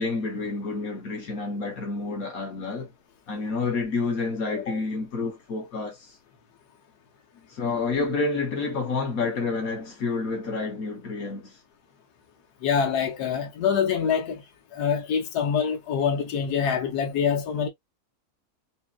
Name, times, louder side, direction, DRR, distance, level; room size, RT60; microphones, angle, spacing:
voice 1, 0.0-2.9 3.3-6.2 7.5-11.6, left 3 dB, 60° left, 1.6 m, -29 dB
voice 2, 12.6-14.4 14.7-17.7, left 7 dB, 75° left, 1.4 m, -25 dB
5.1 x 2.7 x 2.3 m
omnidirectional pair, 1.7 m